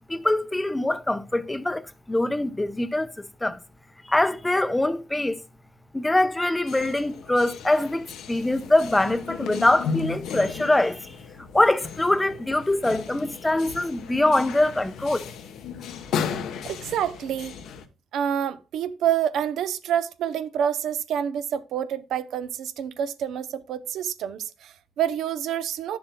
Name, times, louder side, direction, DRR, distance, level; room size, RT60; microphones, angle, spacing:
voice 1, 0.1-3.1 3.4-3.6 4.1-5.4 5.9-11.1 11.5-15.3, left 1 dB, 10° left, 0.6 m, -23 dB
sound 1, 6.7-17.8, left 6 dB, 80° left, 0.9 m, -35 dB
voice 2, 16.6-17.5 18.1-26.0, right 9 dB, 80° right, 0.6 m, -27 dB
11.0 x 7.1 x 2.2 m
cardioid pair, 90°, 0 cm